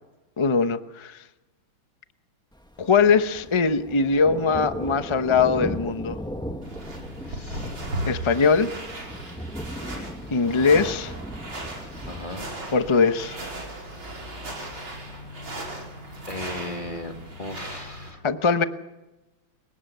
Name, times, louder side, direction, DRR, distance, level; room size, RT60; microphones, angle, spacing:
voice 1, 0.4-1.2 2.8-6.2 8.1-8.7 10.0-11.1 12.7-13.4 18.2-18.6, left 5 dB, 40° left, 10 dB, 0.4 m, -21 dB
Thunder, 2.5-18.1, equal, 5° left, 1.0 m, -38 dB
sound 1, 6.6-18.1, right 1 dB, 80° right, 6.1 m, -37 dB
voice 2, 7.2-7.8 8.5-8.7 12.0-12.5 16.3-18.2, left 1 dB, 25° left, 4 dB, 2.3 m, -37 dB
30.0 x 18.0 x 6.9 m, 1.0 s
omnidirectional pair, 2.2 m